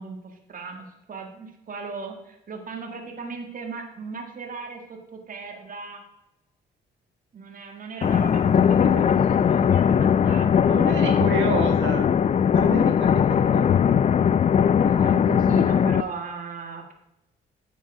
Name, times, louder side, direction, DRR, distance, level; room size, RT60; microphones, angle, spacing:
voice 1, 0.0-6.0 7.3-11.3 12.8-13.0 14.4-14.5 15.0-16.9, right 4 dB, 45° right, 3 dB, 1.7 m, -37 dB
sound 1, 8.0-16.0, left 8 dB, 35° left, 0.4 m, -19 dB
voice 2, 8.8-9.1 10.6-12.1 12.5-13.9 14.8-15.2, right 3 dB, 75° right, 3 dB, 1.7 m, -30 dB
8.9 x 7.5 x 4.8 m, 0.89 s
cardioid pair, 90°, 20 cm